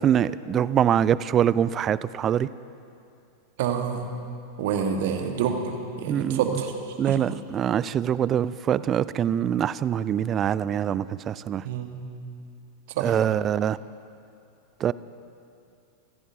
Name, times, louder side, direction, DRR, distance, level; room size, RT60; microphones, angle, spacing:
voice 1, 0.0-2.5 6.1-6.4 7.0-11.6 13.0-13.8 14.8-14.9, right 9 dB, 30° right, 18 dB, 0.3 m, -24 dB
voice 2, 3.6-4.1 4.6-6.7 7.0-7.2 11.6-12.0 12.9-13.1, right 7 dB, 50° right, 5 dB, 1.5 m, -27 dB
26.5 x 15.5 x 2.8 m, 2.6 s
figure-of-eight pair, 90°, 0 cm